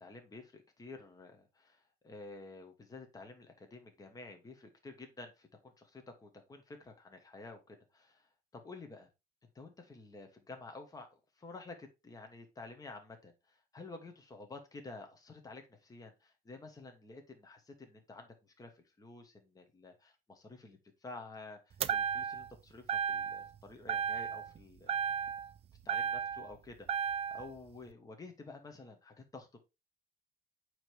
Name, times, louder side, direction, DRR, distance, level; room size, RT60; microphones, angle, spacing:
voice 1, 0.0-9.1 9.5-24.9 25.8-29.6, left 3 dB, 20° left, 4 dB, 1.3 m, -51 dB
sound 1, 21.8-22.5 22.9-23.5 23.9-24.6 24.9-26.5 26.9-27.5, right 7 dB, 35° right, 0.4 m, -34 dB
8.7 x 3.2 x 3.4 m, 0.25 s
cardioid pair, 110°, 17 cm